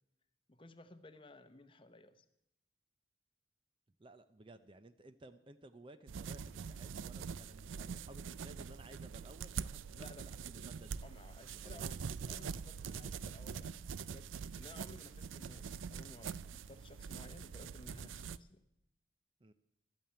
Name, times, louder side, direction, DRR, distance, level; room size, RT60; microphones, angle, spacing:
voice 1, 0.5-2.2 10.0-10.2 11.0-14.3 14.6-18.6, left 2 dB, 25° left, 9 dB, 0.8 m, -57 dB
voice 2, 4.0-11.0 11.6-11.8 19.4-19.5, right 1 dB, 25° right, 11 dB, 0.5 m, -57 dB
sound 1, 6.1-18.4, right 6 dB, 80° right, 0.4 m, -44 dB
12.5 x 8.9 x 8.7 m, 0.81 s
head